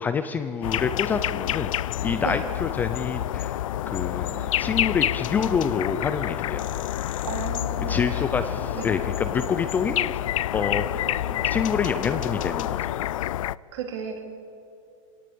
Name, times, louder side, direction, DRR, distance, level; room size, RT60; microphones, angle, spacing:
voice 1, 0.0-1.7 2.0-6.7 7.8-10.1 10.5-13.0, left 6 dB, 10° left, 9 dB, 0.4 m, -27 dB
sound 1, 0.6-13.6, left 13 dB, 75° left, 0.4 m, -28 dB
voice 2, 4.1-4.6 7.3-8.2 8.8-8.9 11.3-11.6 13.7-14.2, right 7 dB, 55° right, 3 dB, 3.4 m, -35 dB
23.0 x 18.0 x 6.9 m, 2.6 s
supercardioid pair, 165°, 17 cm